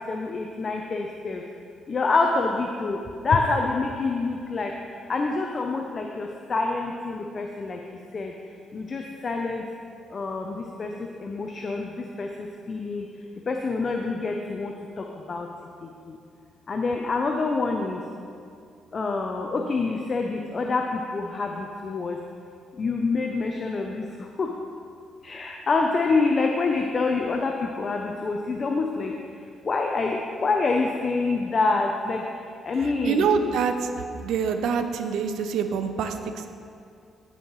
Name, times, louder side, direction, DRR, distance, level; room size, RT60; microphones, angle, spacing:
voice 1, 0.1-1.4 1.9-4.7 5.1-7.8 8.1-8.3 8.7-9.6 10.1-13.1 13.5-15.5 16.1-16.2 16.7-18.0 18.9-22.2 22.8-24.0 24.4-24.5 25.2-29.1 29.7-32.2 32.7-33.3, left 3 dB, 40° left, 2 dB, 0.6 m, -26 dB
voice 2, 33.0-33.9 34.1-36.5, right 6 dB, 80° right, 7 dB, 0.6 m, -25 dB
15.0 x 5.5 x 3.1 m, 2.4 s
cardioid pair, 90°, 0 cm